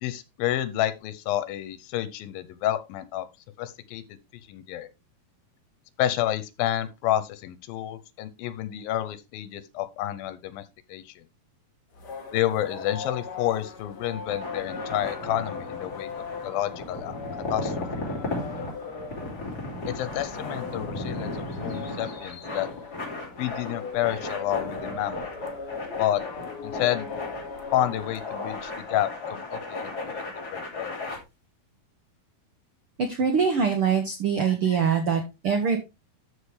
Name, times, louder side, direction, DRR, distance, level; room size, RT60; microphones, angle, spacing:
voice 1, 0.0-3.3 3.6-4.0 4.3-4.9 6.0-10.6 10.9-11.1 12.3-16.1 16.4-17.2 17.5-17.7 19.9-21.3 21.6-22.7 23.4-25.3 25.9-26.2 26.6-27.1 27.7-30.2 30.5-30.9, left 12 dB, 85° left, 2.6 m, -29 dB
sound 1, 11.9-28.9, left 4 dB, 55° left, 1.2 m, -40 dB
sound 2, 14.2-31.2, left 2 dB, 25° left, 3.2 m, -35 dB
voice 2, 33.0-35.8, right 6 dB, 85° right, 1.2 m, -23 dB
13.0 x 5.0 x 3.3 m
omnidirectional pair, 4.1 m